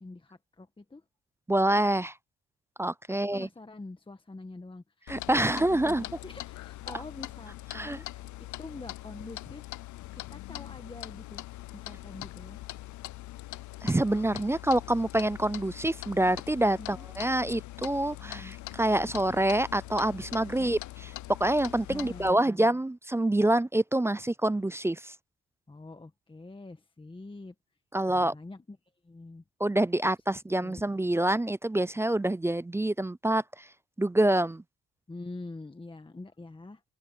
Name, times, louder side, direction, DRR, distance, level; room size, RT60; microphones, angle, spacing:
voice 1, 0.0-1.0 3.1-8.3 8.6-9.7 10.1-11.4 11.7-12.6 16.8-17.1 18.2-18.5 20.4-20.8 21.9-22.7 25.7-27.6 28.1-28.8 29.0-29.4 30.6-30.8 35.1-36.8, left 2 dB, 15° left, 1.6 m, -45 dB
voice 2, 1.5-2.1 2.8-3.5 5.1-6.0 7.7-8.0 13.8-20.8 21.4-25.1 27.9-28.3 29.6-33.7 34.0-34.6, right 1 dB, 10° right, 0.4 m, -26 dB
Clock, 5.1-22.3, left 16 dB, 75° left, 0.6 m, -42 dB
open air
cardioid pair, 90°, 30 cm